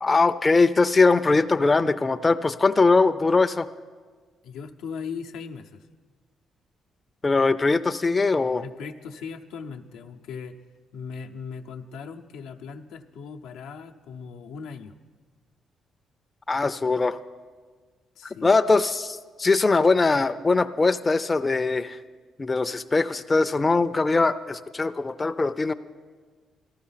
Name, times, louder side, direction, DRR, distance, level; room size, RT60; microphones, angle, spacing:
voice 1, 0.0-3.7 7.2-8.6 16.5-17.2 18.4-22.0 22.4-25.7, left 3 dB, 25° left, 9 dB, 0.4 m, -21 dB
voice 2, 4.4-5.8 8.6-10.6 10.9-14.9 18.2-18.5, left 5 dB, 90° left, 4 dB, 0.7 m, -38 dB
14.5 x 12.5 x 5.7 m, 1.5 s
cardioid pair, 90°, 0 cm